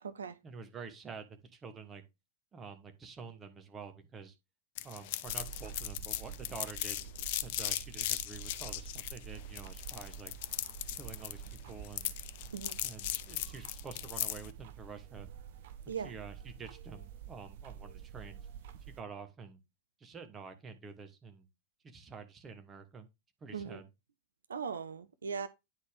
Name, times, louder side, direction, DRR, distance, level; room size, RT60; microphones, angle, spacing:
voice 1, 0.4-2.0 2.5-4.3 4.8-7.0 7.4-10.3 11.0-12.1 12.8-15.3 15.9-18.4 18.9-19.6 20.0-21.5 21.8-23.1 23.4-23.9, right 5 dB, 20° right, 1.2 m, -48 dB
sound 1, 4.8-14.5, left 14 dB, 50° left, 0.4 m, -38 dB
sound 2, 5.2-19.0, right 8 dB, 55° right, 0.9 m, -48 dB
voice 2, 24.5-25.5, right 6 dB, 70° right, 0.5 m, -39 dB
9.6 x 4.2 x 3.6 m
figure-of-eight pair, 90°, 0 cm